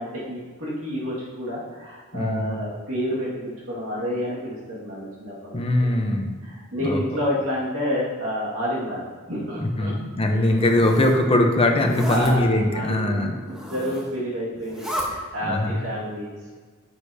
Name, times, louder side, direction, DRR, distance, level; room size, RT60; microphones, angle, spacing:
voice 1, 0.0-5.9 6.4-9.9 12.1-16.3, equal, 85° right, -6 dB, 2.1 m, -29 dB
voice 2, 2.1-2.6 5.5-6.3 6.8-7.0 9.6-13.3 15.4-15.8, left 1 dB, 25° left, 2 dB, 0.8 m, -21 dB
Zipper (clothing), 10.4-11.2 11.8-12.3 13.4-14.1 14.5-15.1, equal, 5° right, 1.1 m, -33 dB
9.7 x 6.4 x 2.8 m, 1.4 s
head